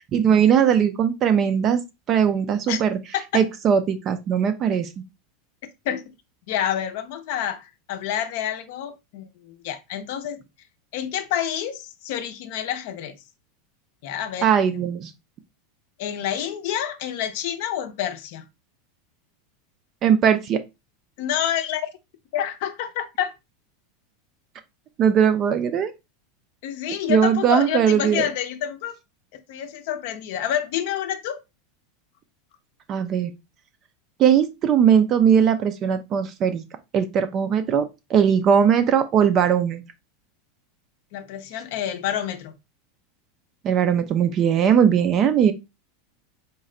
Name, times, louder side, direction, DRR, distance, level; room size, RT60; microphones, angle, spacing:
voice 1, 0.1-1.8 2.1-3.0 3.3-4.9 14.4-15.1 20.0-20.6 25.0-25.9 27.1-28.3 32.9-33.3 34.2-36.6 36.9-39.8 43.6-45.5, right 8 dB, 25° right, 0.4 m, -19 dB
voice 2, 6.5-10.4 10.9-13.2 14.0-14.5 16.0-18.4 21.2-21.9 22.3-23.3 26.6-29.0 29.5-31.4 41.1-42.5, left 10 dB, 55° left, 0.6 m, -28 dB
4.2 x 2.2 x 3.7 m
supercardioid pair, 165°, 0 cm